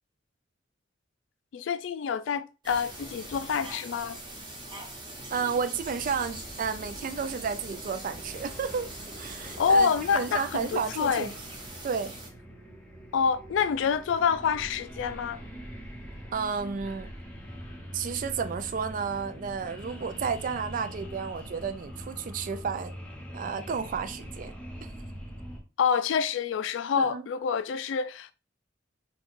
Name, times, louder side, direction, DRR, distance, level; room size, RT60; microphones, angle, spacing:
voice 1, 1.5-4.2 9.6-11.3 13.1-15.4 25.8-28.3, left 6 dB, 80° left, 0.3 m, -27 dB
sound 1, 2.6-12.3, right 1 dB, 25° right, 0.9 m, -42 dB
voice 2, 5.3-8.9 9.2-11.3 11.8-12.1 16.3-17.1 17.9-22.9 23.3-24.5 27.0-27.2, right 6 dB, 45° right, 0.4 m, -32 dB
sound 2, 5.7-25.6, equal, 5° left, 0.9 m, -44 dB
4.4 x 2.3 x 4.6 m
head